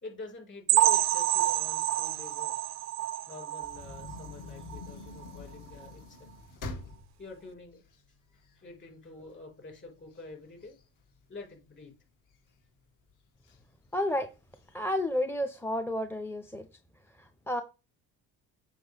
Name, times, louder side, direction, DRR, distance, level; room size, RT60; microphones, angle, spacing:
voice 1, 0.0-2.5 3.3-6.3 7.2-7.8 8.1-10.7 11.3-11.9, left 3 dB, 30° left, 4.5 m, -47 dB
sound 1, 0.7-4.3 4.7-4.9 5.2-5.3 5.8-5.9, right 15 dB, 50° right, 0.4 m, -28 dB
sound 2, 3.6-8.8 9.3-9.4 9.7-11.8 12.3-12.8 13.4-13.6 13.9-14.0 14.4-15.0, left 3 dB, 55° left, 2.1 m, -45 dB
voice 2, 13.9-14.3 14.7-16.7 17.2-17.6, left 1 dB, 5° left, 0.6 m, -31 dB
7.8 x 5.8 x 3.3 m
cardioid pair, 95°, 36 cm